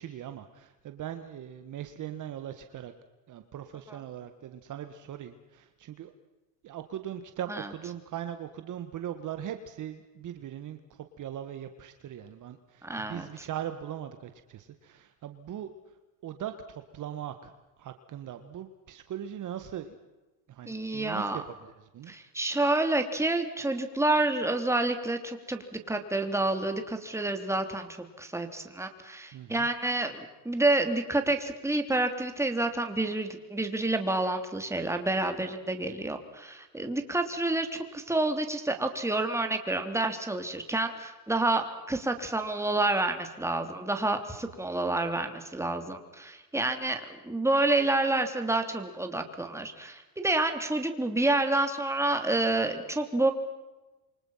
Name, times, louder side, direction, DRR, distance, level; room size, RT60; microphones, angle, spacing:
voice 1, 0.0-2.9 3.3-6.1 6.6-15.7 16.2-17.5 17.8-20.0 20.5-21.3 21.6-22.1 29.3-29.7, right 10 dB, 40° right, 9 dB, 1.8 m, -40 dB
voice 2, 12.8-13.4 20.6-21.4 22.1-53.3, right 2 dB, 5° right, 6 dB, 3.3 m, -29 dB
28.5 x 24.5 x 5.8 m, 1.1 s
supercardioid pair, 110°, 46 cm